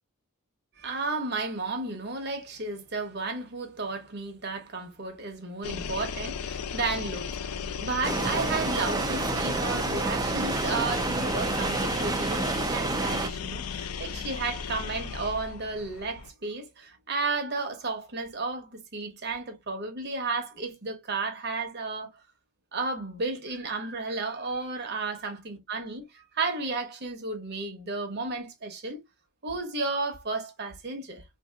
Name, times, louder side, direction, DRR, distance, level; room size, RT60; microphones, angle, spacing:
voice 1, 0.8-22.2 22.7-29.0 29.4-31.2, right 3 dB, 50° right, 0.9 m, -33 dB
building work, 5.6-16.3, left 6 dB, 80° left, 0.5 m, -36 dB
sound 1, 8.0-13.3, right 3 dB, 15° right, 0.4 m, -29 dB
3.6 x 2.7 x 2.3 m
head